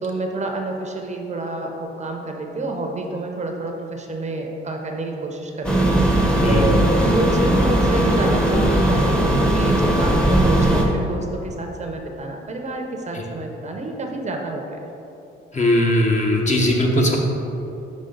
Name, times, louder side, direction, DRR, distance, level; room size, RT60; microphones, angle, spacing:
voice 1, 0.0-14.8, right 2 dB, 35° right, 2 dB, 0.7 m, -28 dB
sound 1, 5.6-10.8, right 1 dB, 5° left, 0.8 m, -18 dB
voice 2, 15.5-17.2, left 1 dB, 35° left, 0 dB, 1.0 m, -19 dB
5.2 x 5.1 x 3.8 m, 2.8 s
cardioid pair, 90°, 20 cm